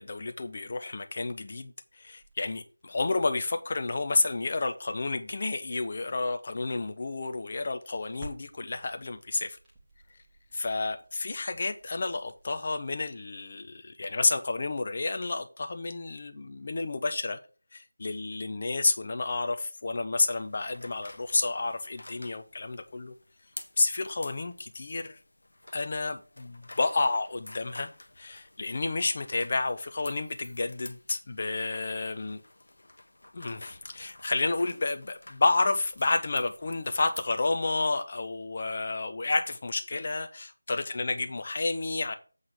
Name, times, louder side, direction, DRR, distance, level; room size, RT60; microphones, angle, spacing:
voice 1, 0.0-9.6 10.5-17.4 17.7-23.1 23.8-25.2 25.7-27.9 28.2-32.4 33.3-42.1, left 3 dB, 35° left, 0.8 m, -30 dB
sound 1, 1.9-12.9, right 1 dB, 5° right, 1.3 m, -55 dB
sound 2, 20.3-37.5, left 1 dB, 65° left, 1.0 m, -50 dB
8.0 x 3.8 x 6.4 m
figure-of-eight pair, 170°, 0 cm